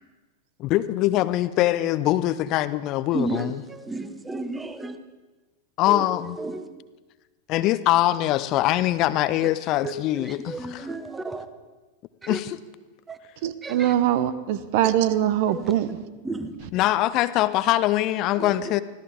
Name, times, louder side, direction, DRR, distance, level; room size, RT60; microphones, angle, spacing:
voice 1, 0.6-3.6 5.8-6.4 7.5-10.9 12.3-12.6 16.7-18.8, left 15 dB, 40° left, 15 dB, 0.6 m, -23 dB
voice 2, 3.1-5.0 5.9-6.0 6.4-6.6 9.8-9.9 10.5-11.5 12.2-12.4 13.1-13.2 13.6-13.9 15.5-15.6 16.2-16.5 18.4-18.7, right 2 dB, 10° right, 10 dB, 1.2 m, -32 dB
voice 3, 13.4-15.9, right 11 dB, 50° right, 14 dB, 1.0 m, -22 dB
24.5 x 16.0 x 3.6 m, 1.2 s
figure-of-eight pair, 90°, 0 cm